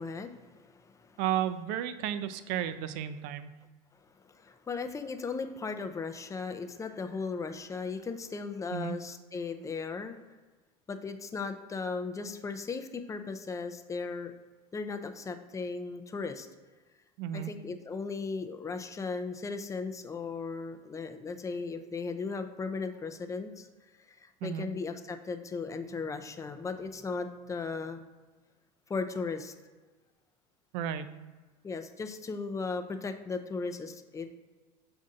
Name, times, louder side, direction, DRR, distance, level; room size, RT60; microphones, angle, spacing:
voice 1, 0.0-1.2 4.3-10.2 10.9-14.3 14.7-16.5 17.3-23.7 24.1-28.0 28.9-29.5 31.6-34.3, left 4 dB, 15° left, 8 dB, 0.4 m, -37 dB
voice 2, 1.2-3.6 8.7-9.0 17.2-17.5 24.4-24.7 30.7-31.1, right 10 dB, 65° right, 12 dB, 0.4 m, -33 dB
6.2 x 2.6 x 2.5 m, 1.3 s
hypercardioid pair, 90°, 20 cm